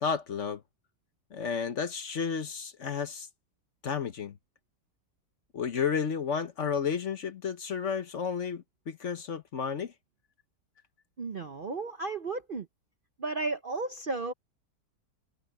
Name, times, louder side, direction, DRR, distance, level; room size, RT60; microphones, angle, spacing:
voice 1, 0.0-0.6 1.3-3.3 3.8-4.4 5.5-9.9, left 6 dB, 50° left, 1.2 m, -32 dB
voice 2, 11.2-12.7 13.2-14.3, right 3 dB, 45° right, 0.7 m, -34 dB
omnidirectional pair, 1.8 m